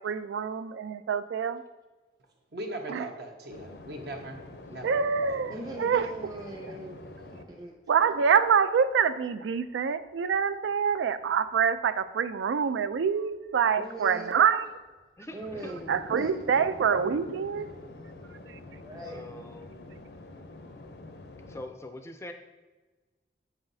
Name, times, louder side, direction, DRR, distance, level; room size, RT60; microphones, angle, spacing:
voice 1, 0.0-1.6 2.9-3.1 4.8-6.3 6.6-6.7 7.9-14.7 15.9-17.7 18.5-18.6, right 6 dB, 90° right, 13 dB, 0.3 m, -26 dB
voice 2, 2.5-5.0 5.3-5.7, right 1 dB, 65° right, 3 dB, 0.8 m, -40 dB
sound 1, 3.5-9.8 10.0-21.7, left 2 dB, 65° left, 0.6 m, -47 dB
voice 3, 5.5-7.7 13.8-14.5 15.3-17.0 18.2-18.3 18.6-19.3, right 2 dB, 20° right, -1 dB, 0.7 m, -41 dB
voice 4, 15.2-15.7 19.1-19.8 21.5-22.3, left 1 dB, 15° left, 6 dB, 0.4 m, -43 dB
7.8 x 5.7 x 2.7 m, 1.2 s
head